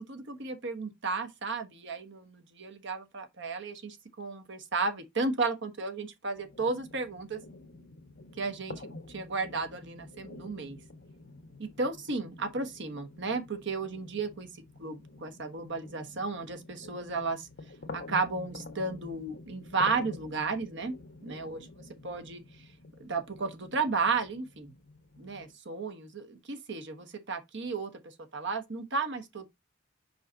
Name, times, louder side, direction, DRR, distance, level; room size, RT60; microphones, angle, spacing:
voice 1, 0.0-7.4 8.4-10.8 11.6-17.5 17.9-20.9 21.2-21.7 22.0-22.4 23.0-24.7 25.2-29.5, right 4 dB, 65° right, 1.2 m, -34 dB
sound 1, 6.4-25.5, left 2 dB, 55° left, 1.2 m, -49 dB
5.4 x 4.9 x 3.9 m
head